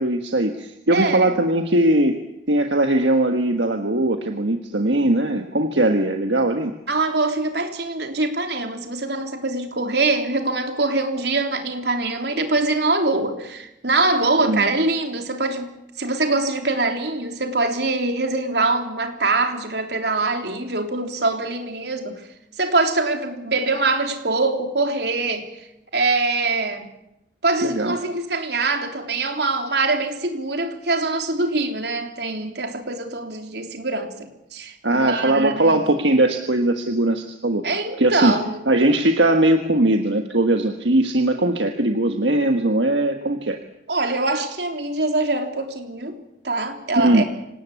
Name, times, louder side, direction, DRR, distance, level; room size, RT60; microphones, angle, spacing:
voice 1, 0.0-2.2 2.5-6.7 14.4-14.7 27.6-28.0 34.8-37.7 38.0-38.4 38.7-43.6 47.0-47.2, right 1 dB, 85° right, 5 dB, 1.6 m, -20 dB
voice 2, 0.9-1.3 6.9-22.2 22.6-25.7 25.9-26.9 27.4-35.8 37.6-38.6 43.9-46.2 46.4-47.2, right 3 dB, 70° right, 5 dB, 3.4 m, -23 dB
26.5 x 18.5 x 8.5 m, 0.86 s
head